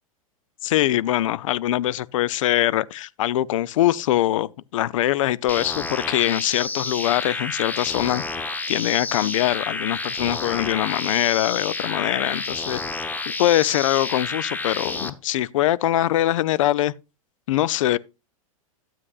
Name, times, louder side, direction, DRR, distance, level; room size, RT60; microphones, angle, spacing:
voice 1, 0.6-8.2 8.7-12.8 13.3-16.9 17.5-18.0, left 14 dB, 65° left, 0.5 m, -23 dB
sound 1, 5.5-15.1, left 3 dB, 10° left, 0.8 m, -30 dB
13.0 x 7.6 x 2.4 m
figure-of-eight pair, 95°, 18 cm